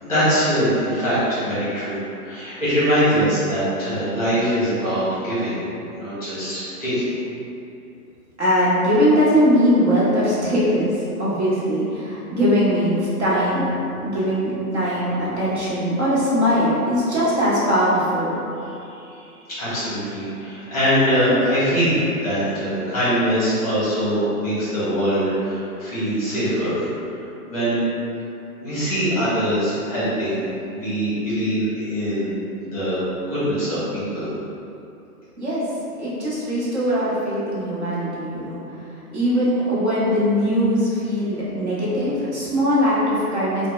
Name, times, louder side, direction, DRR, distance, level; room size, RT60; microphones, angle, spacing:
voice 1, 0.0-5.6 5.9-7.2 18.7-26.8 27.1-27.9 28.6-30.4 30.7-32.3 32.6-33.0 33.3-34.3, equal, 25° left, -12 dB, 0.8 m, -23 dB
voice 2, 8.4-18.3 35.4-35.6 36.0-38.6 39.1-43.7, equal, 45° right, -9 dB, 1.0 m, -21 dB
3.2 x 2.1 x 3.0 m, 2.7 s
hypercardioid pair, 180°, 46 cm